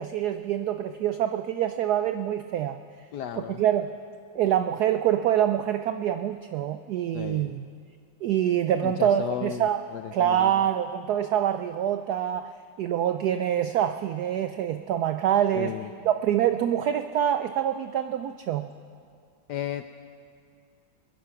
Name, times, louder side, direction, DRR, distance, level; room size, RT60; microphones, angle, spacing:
voice 1, 0.0-2.8 3.3-3.9 4.3-7.6 8.2-9.8 10.1-12.5 12.8-15.8 16.0-18.7, right 10 dB, 90° right, 9 dB, 0.8 m, -25 dB
voice 2, 3.1-3.6 7.1-7.5 8.8-10.5 15.5-15.9 19.5-19.8, left 10 dB, 75° left, 9 dB, 0.9 m, -34 dB
22.0 x 10.5 x 5.8 m, 2.3 s
omnidirectional pair, 2.2 m